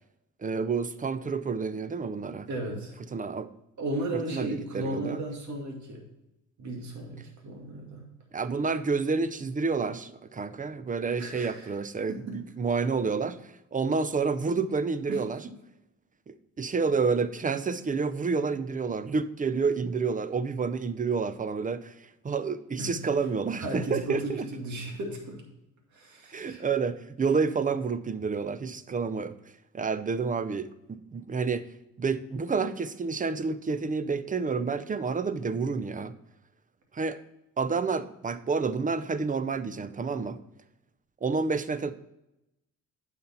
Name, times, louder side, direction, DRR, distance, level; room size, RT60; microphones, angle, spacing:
voice 1, 0.4-2.5 3.1-3.5 4.1-5.2 8.3-15.4 16.3-21.9 22.2-24.5 26.3-29.4 29.7-31.7 32.0-36.1 36.9-37.2 37.6-40.4 41.2-41.9, right 4 dB, 25° right, 0.6 m, -29 dB
voice 2, 2.5-2.9 3.8-6.0 6.6-8.1 11.2-11.7 12.1-12.4 15.1-15.5 22.8-22.9 23.6-25.4 25.9-26.6, right 1 dB, 70° right, 2.3 m, -35 dB
9.3 x 5.9 x 4.3 m
cardioid pair, 90°, 30 cm